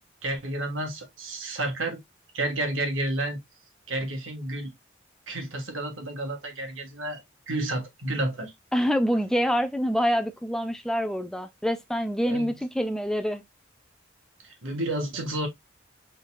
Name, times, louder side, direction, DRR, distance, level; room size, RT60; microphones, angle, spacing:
voice 1, 0.2-2.0 2.3-3.4 3.9-4.7 5.3-7.2 7.5-8.5 12.3-12.5 14.4-15.5, right 1 dB, 85° right, 1.6 m, -30 dB
voice 2, 8.7-13.4, equal, 5° left, 0.4 m, -26 dB
5.3 x 3.7 x 2.3 m
head